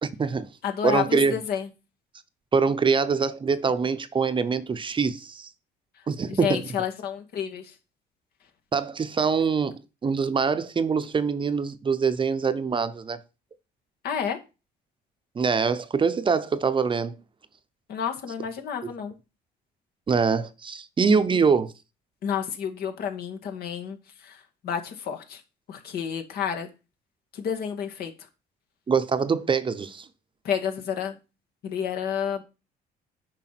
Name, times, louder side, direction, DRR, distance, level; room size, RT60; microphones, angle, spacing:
voice 1, 0.0-0.5 0.8-1.3 2.5-5.5 6.1-6.6 8.7-13.2 15.3-17.2 18.8-18.9 20.1-21.7 28.9-30.1, right 5 dB, 30° right, 0.8 m, -24 dB
voice 2, 0.6-1.7 6.3-7.7 14.0-14.4 17.9-19.2 22.2-25.4 25.7-26.7 27.3-28.1 30.4-31.2 31.6-32.4, left 8 dB, 65° left, 2.1 m, -30 dB
9.1 x 5.5 x 5.9 m
cardioid pair, 110°, 17 cm